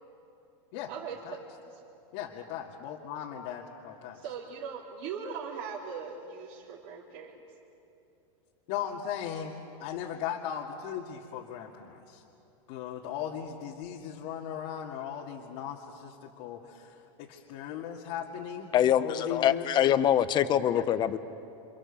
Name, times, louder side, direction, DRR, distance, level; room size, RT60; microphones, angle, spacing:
voice 1, 2.1-4.3 8.7-9.5 9.8-12.2 12.7-18.7 19.0-19.7 20.7-20.8, left 9 dB, 50° left, 2.1 m, -38 dB
voice 2, 4.1-7.3, right 6 dB, 50° right, 3.6 m, -39 dB
voice 3, 18.7-21.2, left 10 dB, 25° left, 0.9 m, -24 dB
28.5 x 26.5 x 7.2 m
supercardioid pair, 150°, 17 cm